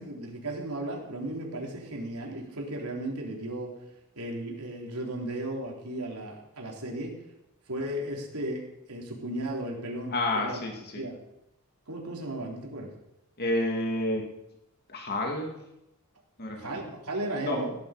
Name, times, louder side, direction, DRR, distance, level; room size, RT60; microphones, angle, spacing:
voice 1, 0.0-3.7 4.2-7.2 7.7-8.6 8.9-10.6 11.0-11.2 11.9-12.9 16.6-17.7, right 1 dB, 85° right, -1 dB, 3.5 m, -35 dB
voice 2, 10.1-11.0 13.4-14.2 14.9-15.6 16.4-16.9 17.4-17.7, left 1 dB, 45° left, 1 dB, 2.3 m, -30 dB
16.5 x 10.5 x 5.0 m, 0.87 s
head